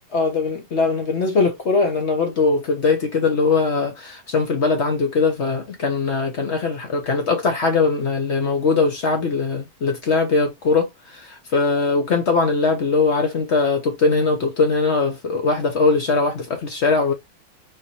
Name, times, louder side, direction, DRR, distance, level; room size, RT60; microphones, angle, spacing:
voice 1, 0.1-17.1, left 4 dB, 55° left, 0.7 m, -21 dB
4.2 x 2.5 x 2.9 m
omnidirectional pair, 2.1 m